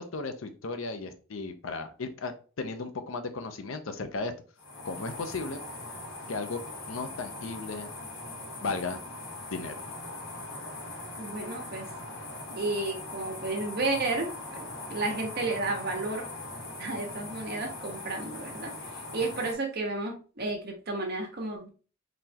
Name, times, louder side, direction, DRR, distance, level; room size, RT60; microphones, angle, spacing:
voice 1, 0.0-4.3 4.8-5.6 6.3-6.6 6.9-7.9 8.6-9.0 9.5-9.7, left 3 dB, 85° left, 9 dB, 0.7 m, -35 dB
sound 1, 4.6-19.5, left 2 dB, 65° left, 1.6 m, -41 dB
voice 2, 11.2-11.9 12.5-14.3 14.5-16.2 16.8-18.7 19.1-21.7, right 2 dB, 55° right, 1 dB, 1.2 m, -32 dB
4.1 x 3.2 x 2.8 m, 0.37 s
head